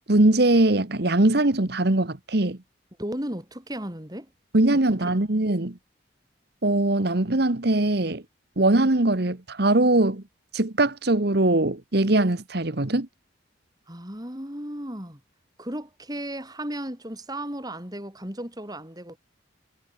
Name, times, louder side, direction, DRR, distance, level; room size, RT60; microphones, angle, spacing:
voice 1, 0.1-2.6 4.5-5.8 6.6-8.2 8.6-10.2 10.5-13.1, right 2 dB, 55° right, 1.4 m, -21 dB
voice 2, 3.0-4.3 13.9-15.2 15.6-19.2, right 1 dB, 20° right, 5.5 m, -35 dB
head